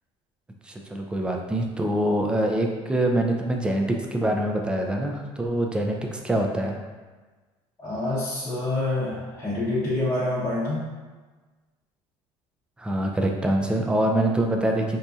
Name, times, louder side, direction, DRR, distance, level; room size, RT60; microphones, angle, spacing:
voice 1, 0.6-6.8 12.8-15.0, right 1 dB, 10° right, 1 dB, 0.4 m, -25 dB
voice 2, 7.8-10.8, left 2 dB, 20° left, -11 dB, 0.8 m, -27 dB
4.1 x 2.6 x 2.3 m, 1.3 s
cardioid pair, 130°, 12 cm